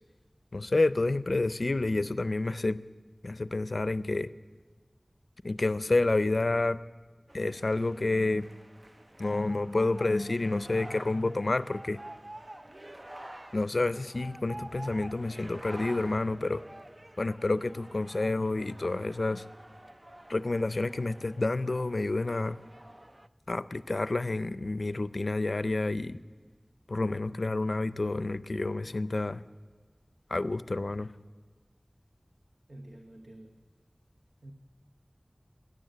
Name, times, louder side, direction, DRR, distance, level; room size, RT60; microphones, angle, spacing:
voice 1, 0.5-2.8 3.2-4.3 5.4-6.8 7.3-8.5 9.2-12.0 13.5-16.6 17.2-19.4 20.3-22.6 23.5-26.2 26.9-29.4 30.3-31.1, left 2 dB, 80° left, 15 dB, 0.4 m, -29 dB
sound 1, 7.3-23.3, right 1 dB, 35° right, 0.5 m, -48 dB
voice 2, 32.7-33.6 34.4-34.5, right 1 dB, 75° right, 2 dB, 1.1 m, -48 dB
14.0 x 10.0 x 9.1 m, 1.5 s
wide cardioid pair, 45°, 0 cm